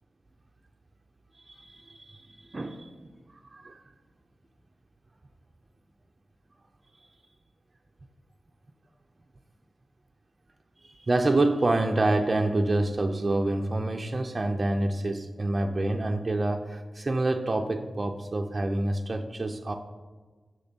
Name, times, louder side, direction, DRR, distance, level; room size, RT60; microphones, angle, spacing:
voice 1, 1.3-3.1 3.5-3.8 10.8-19.7, right 2 dB, 40° right, 4 dB, 0.4 m, -27 dB
6.5 x 6.5 x 2.7 m, 1.4 s
cardioid pair, 65°, 0 cm